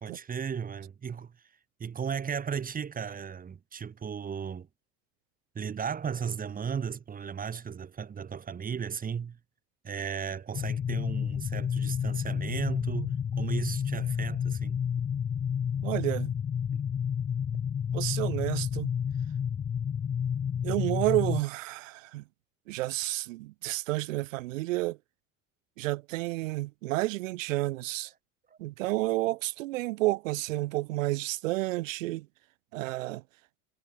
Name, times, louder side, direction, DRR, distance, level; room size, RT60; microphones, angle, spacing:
voice 1, 0.0-1.4 1.8-4.7 5.5-9.4 9.8-14.8 16.7-16.8 28.5-28.6, right 7 dB, 20° right, 1.2 m, -35 dB
sound 1, 10.5-21.4, left 8 dB, 20° left, 0.4 m, -30 dB
voice 2, 15.8-16.3 17.9-18.9 20.6-22.2 22.7-25.0 25.8-28.1 28.6-32.3 32.7-33.2, right 19 dB, 90° right, 1.5 m, -30 dB
supercardioid pair, 110°, 38 cm